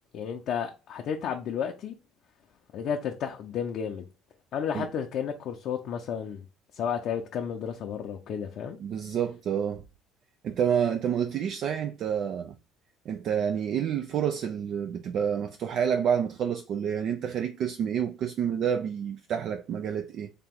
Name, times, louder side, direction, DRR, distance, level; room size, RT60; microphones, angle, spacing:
voice 1, 0.1-2.0 2.7-4.1 4.5-6.4 6.7-8.8, left 7 dB, 60° left, 0.5 m, -32 dB
voice 2, 8.8-9.8 10.4-12.6 13.1-20.3, right 8 dB, 60° right, 0.4 m, -28 dB
3.3 x 2.8 x 3.7 m
hypercardioid pair, 70°, 0 cm